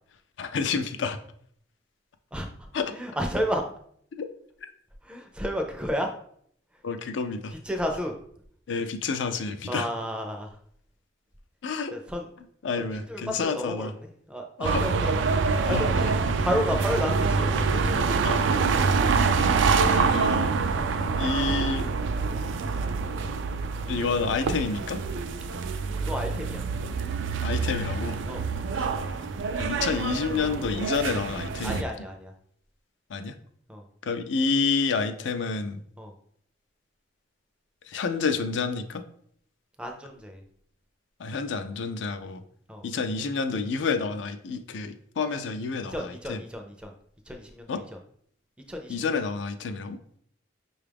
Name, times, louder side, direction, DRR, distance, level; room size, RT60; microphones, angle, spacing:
voice 1, 0.4-1.2 2.7-2.9 4.6-4.7 6.8-7.6 8.7-9.9 11.6-11.9 12.6-13.9 14.6-14.8 15.7-16.1 18.2-18.8 19.9-20.5 21.2-21.9 23.9-25.0 27.4-28.2 28.7-29.2 29.6-31.9 33.1-33.4 34.0-35.8 37.9-39.0 41.2-42.4 42.8-46.4 47.7-47.8 48.9-50.0, left 4 dB, 70° left, 9 dB, 0.4 m, -29 dB
voice 2, 2.9-3.6 5.0-6.1 7.5-8.1 9.7-10.5 11.9-12.3 12.8-13.9 14.3-15.1 15.7-15.9 16.4-18.2 19.2-19.4 26.0-26.6 28.2-28.4 31.6-32.3 33.7-33.8 36.0-36.1 39.8-40.4 42.7-42.8 45.8-46.9 47.3-47.8 48.7-49.1, equal, 5° right, 3 dB, 0.4 m, -31 dB
sound 1, 14.6-31.8, right 4 dB, 75° right, 0.3 m, -26 dB
5.6 x 2.4 x 3.4 m, 0.64 s
head